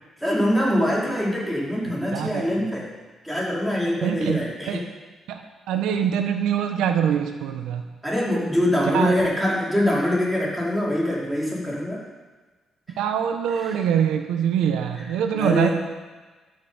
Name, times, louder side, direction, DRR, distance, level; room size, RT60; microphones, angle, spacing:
voice 1, 0.2-2.9 3.2-4.8 8.0-12.0 13.6-13.7 15.0-15.1 15.4-15.7, left 1 dB, 5° right, -5 dB, 4.9 m, -24 dB
voice 2, 2.1-2.4 4.0-4.8 5.3-5.4 5.7-7.9 8.9-9.1 13.0-15.7, right 8 dB, 90° right, 6 dB, 1.1 m, -24 dB
12.5 x 7.9 x 7.2 m, 1.3 s
cardioid pair, 90°, 0 cm